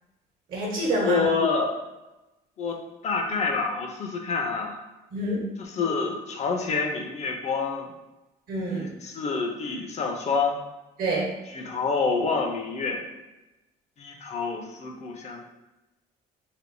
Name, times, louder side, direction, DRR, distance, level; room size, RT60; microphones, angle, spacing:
voice 1, 0.5-1.3 5.1-5.4 8.5-8.9 11.0-11.3, right 1 dB, 60° right, -3 dB, 1.0 m, -27 dB
voice 2, 1.0-1.8 2.6-4.8 5.7-7.9 8.7-10.6 11.5-13.1 14.0-15.4, left 4 dB, 40° left, 3 dB, 0.5 m, -27 dB
3.4 x 2.7 x 2.6 m, 1.0 s
cardioid pair, 110°, 17 cm